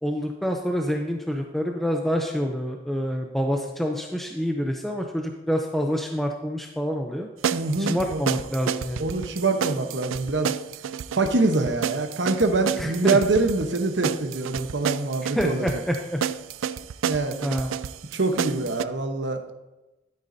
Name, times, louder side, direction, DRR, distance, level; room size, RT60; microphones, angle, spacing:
voice 1, 0.0-7.3 7.8-9.1 12.8-13.2 15.2-16.2 17.4-17.8, equal, ahead, 2 dB, 0.5 m, -27 dB
sound 1, 7.4-18.8, right 8 dB, 90° right, 0.4 m, -30 dB
voice 2, 7.5-8.2 9.0-10.6 11.1-15.7 17.1-17.5 18.1-19.5, right 3 dB, 65° right, 5 dB, 1.0 m, -24 dB
12.0 x 9.2 x 2.7 m, 1.1 s
head